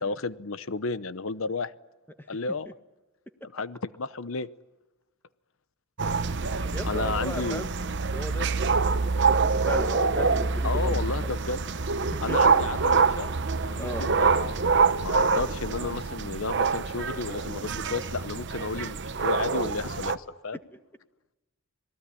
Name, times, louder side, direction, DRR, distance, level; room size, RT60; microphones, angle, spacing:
voice 1, 0.0-1.7 2.3-2.7 3.5-4.5 6.8-7.7 10.6-11.6 12.2-13.3 13.6-14.5 15.0-20.6, left 4 dB, 70° left, 16 dB, 0.8 m, -32 dB
sound 1, 6.0-20.2, right 4 dB, 55° right, 0.9 m, -26 dB
voice 2, 6.2-7.7 8.1-11.3 12.1-12.4 13.8-14.0 18.8-18.9 20.7-20.8, equal, 10° left, 8 dB, 1.5 m, -37 dB
27.0 x 19.0 x 9.9 m, 1.1 s
head